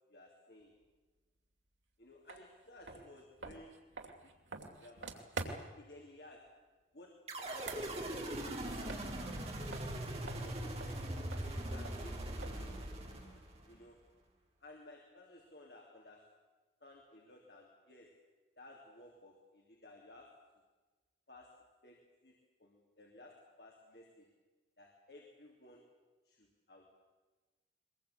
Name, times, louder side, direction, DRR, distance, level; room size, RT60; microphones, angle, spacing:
voice 1, 0.1-0.7 2.0-3.9 4.2-4.3 4.8-6.7 6.9-9.4 10.2-11.0 11.5-12.8 13.7-14.1 14.6-16.4 16.8-18.2 18.6-20.5 21.3-24.3 24.8-25.9 26.2-26.9, left 1 dB, 60° left, 0 dB, 3.1 m, -57 dB
sound 1, 2.3-2.4 2.8-5.9 7.4-9.4 9.7-12.8, right 3 dB, 90° right, 2.7 m, -47 dB
sound 2, 7.3-13.7, right 1 dB, 35° right, 3.6 m, -41 dB
22.5 x 21.5 x 8.5 m, 1.3 s
head